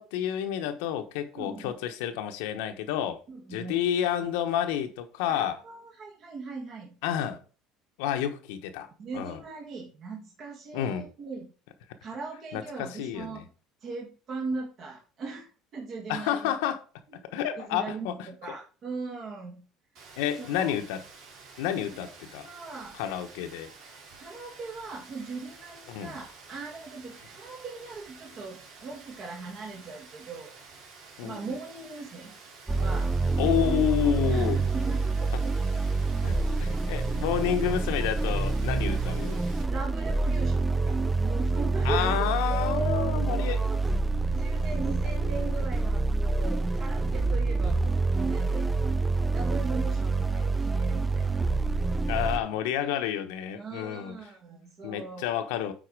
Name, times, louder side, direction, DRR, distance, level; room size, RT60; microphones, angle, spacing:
voice 1, 0.0-3.2 3.5-5.6 7.0-7.4 8.0-8.9 9.1-9.4 10.7-11.1 12.5-13.4 16.1-16.8 17.2-18.1 20.2-21.0 21.6-22.5 23.0-23.7 25.9-26.2 31.2-31.4 33.4-34.6 36.2-39.4 41.8-43.6 52.1-54.2 54.8-55.7, left 10 dB, 85° left, 1.0 m, -29 dB
voice 2, 1.3-1.7 3.3-3.8 5.3-7.0 9.0-11.5 12.0-13.5 13.8-16.5 17.1-17.2 17.6-19.7 20.3-20.8 22.4-23.0 24.2-30.5 31.2-32.3 32.7-33.2 33.4-33.6 34.3-35.5 37.3-37.5 39.7-49.0 49.3-51.4 52.2-52.4 52.8-53.0 53.5-55.3, right 3 dB, 45° right, 1.6 m, -39 dB
Rain, 19.9-39.6, right 4 dB, 70° right, 3.2 m, -50 dB
sound 1, 32.7-52.4, right 3 dB, 15° right, 0.5 m, -27 dB
9.1 x 4.2 x 4.7 m
supercardioid pair, 115°, 0 cm